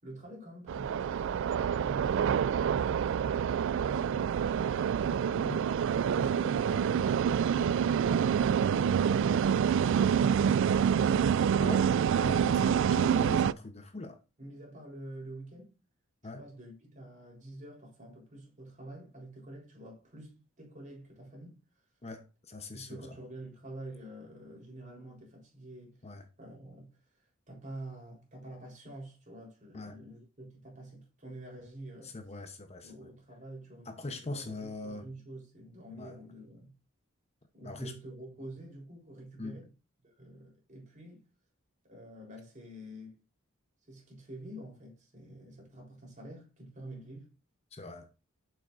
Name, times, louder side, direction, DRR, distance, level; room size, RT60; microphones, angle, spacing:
voice 1, 0.0-5.2 5.7-9.2 14.4-15.8 16.2-21.6 22.7-26.0 26.4-32.2 32.8-36.7 37.5-39.7 40.0-41.2 41.8-43.2 43.9-47.3, right 1 dB, 40° right, 3.9 m, -48 dB
sound 1, 0.7-13.5, right 8 dB, 65° right, 0.3 m, -27 dB
voice 2, 5.3-5.6 11.6-14.2 16.2-16.4 22.0-23.1 26.0-26.2 29.7-30.0 32.0-32.9 33.9-35.1 36.0-36.1 37.6-37.9 39.4-39.6 47.7-48.1, left 2 dB, 30° left, 0.9 m, -41 dB
8.1 x 7.0 x 2.6 m
head